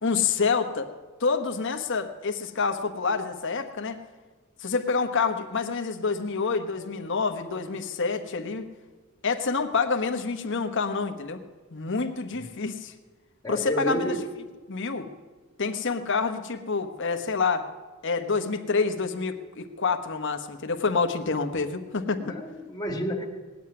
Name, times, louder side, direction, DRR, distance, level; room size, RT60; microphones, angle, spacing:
voice 1, 0.0-0.9 1.2-4.0 4.6-8.7 9.2-11.4 11.7-12.9 13.5-14.2 14.7-15.1 15.6-17.7 18.0-22.2, left 4 dB, 60° left, 7 dB, 1.2 m, -27 dB
voice 2, 13.4-14.3 22.2-23.3, equal, 20° left, 1 dB, 1.9 m, -30 dB
18.5 x 7.8 x 9.6 m, 1.3 s
head